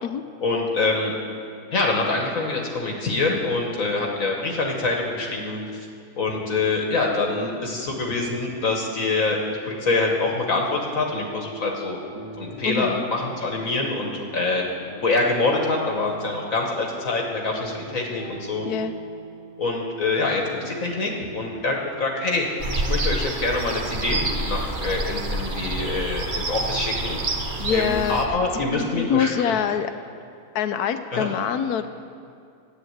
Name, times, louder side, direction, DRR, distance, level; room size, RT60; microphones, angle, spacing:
voice 1, 0.4-1.1 1.7-5.9 6.2-9.4 9.7-12.0 12.4-14.7 15.0-18.6 19.6-27.2 27.7-29.6 31.1-31.3, left 3 dB, 55° left, 1 dB, 1.5 m, -25 dB
sound 1, 10.8-21.5, right 2 dB, 65° right, 2.1 m, -40 dB
voice 2, 12.6-13.0 18.6-18.9 27.6-28.2 28.5-28.6 29.0-29.9 30.5-31.9, left 8 dB, 75° left, 10 dB, 1.1 m, -24 dB
sound 2, 22.6-28.3, right 2 dB, 40° right, 0.9 m, -28 dB
10.5 x 9.0 x 7.9 m, 2.4 s
omnidirectional pair, 1.7 m